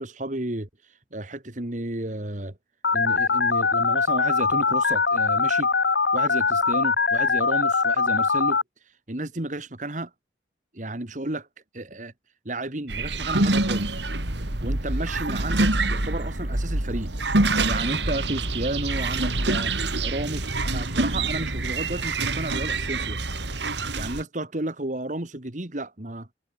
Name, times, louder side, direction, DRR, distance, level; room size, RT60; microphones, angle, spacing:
voice 1, 0.0-2.5 2.9-5.7 6.1-8.6 9.1-10.1 10.7-11.5 11.7-12.1 12.5-14.0 14.6-17.1 17.6-19.7 20.0-23.2 24.0-26.3, right 1 dB, 45° right, 1.9 m, -32 dB
Telephone, 2.8-8.6, left 4 dB, 75° left, 2.2 m, -22 dB
sound 1, 12.9-24.2, right 2 dB, 80° right, 3.1 m, -26 dB
head